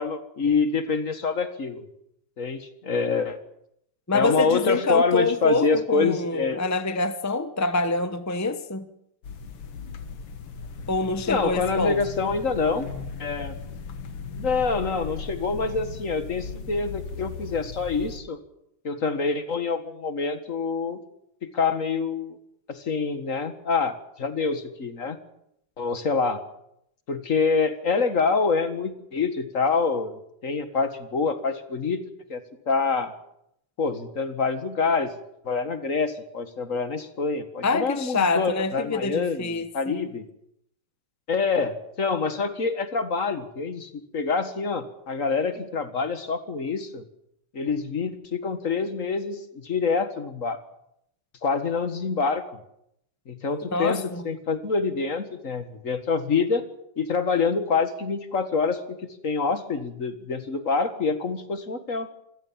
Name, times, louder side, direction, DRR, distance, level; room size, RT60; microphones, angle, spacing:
voice 1, 0.0-1.8 2.4-3.4 4.1-6.6 11.3-12.9 13.2-13.6 14.4-18.4 18.8-21.0 21.4-22.4 22.7-25.2 25.8-26.4 27.1-32.4 32.7-33.1 33.8-35.1 35.5-40.2 41.3-47.0 47.5-50.6 51.4-52.5 53.3-56.6 57.0-59.0 59.2-62.1, left 4 dB, 40° left, 1.9 m, -26 dB
voice 2, 4.1-8.9 10.9-12.0 37.6-39.9 53.7-54.3, left 3 dB, 25° left, 0.4 m, -25 dB
sound 1, 9.2-18.2, left 5 dB, 80° left, 2.5 m, -37 dB
26.0 x 16.5 x 7.5 m
omnidirectional pair, 2.4 m